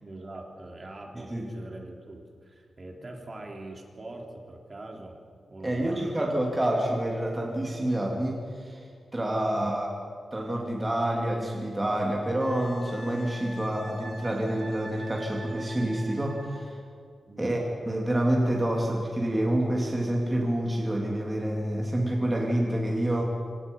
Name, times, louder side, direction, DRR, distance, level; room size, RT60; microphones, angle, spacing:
voice 1, 0.0-5.2 5.5-6.1 9.5-9.8 17.3-17.7, right 2 dB, 30° right, 1 dB, 3.4 m, -43 dB
voice 2, 5.6-8.8 9.1-9.9 10.3-16.8 17.4-23.2, right 1 dB, 15° right, -1 dB, 2.8 m, -28 dB
Wind instrument woodwind instrument, 12.4-16.6 19.3-19.4, right 1 dB, 50° right, 7.3 m, -45 dB
27.0 x 26.0 x 5.4 m, 2.3 s
wide cardioid pair, 160°, 0 cm